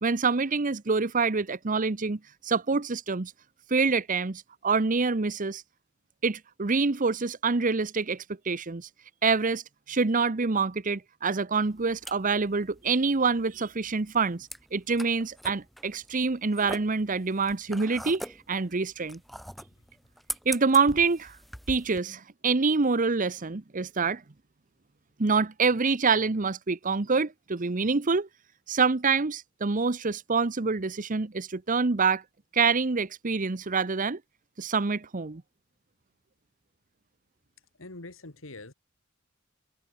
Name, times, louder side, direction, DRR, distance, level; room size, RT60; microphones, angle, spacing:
voice 1, 0.0-3.3 3.7-5.6 6.2-8.9 9.2-9.6 9.9-19.2 20.5-21.3 21.7-24.2 25.2-28.3 28.7-32.2 32.5-34.2 34.6-35.4, right 4 dB, 40° right, 0.8 m, -26 dB
sound 1, 11.6-22.0, equal, ahead, 3.1 m, -42 dB
voice 2, 37.8-38.7, left 2 dB, 75° left, 2.4 m, -44 dB
head